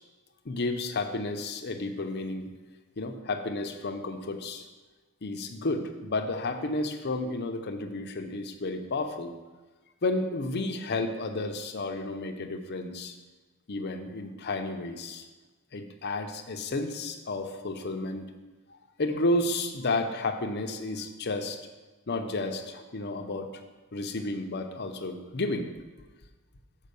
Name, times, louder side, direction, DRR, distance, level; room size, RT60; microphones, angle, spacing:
voice 1, 0.4-2.5 3.0-4.7 5.2-9.3 10.0-13.2 13.7-15.3 15.7-18.3 19.0-21.6 22.1-23.5 23.9-25.7, left 2 dB, 50° left, 6 dB, 0.7 m, -32 dB
6.5 x 5.4 x 6.8 m, 1.2 s
head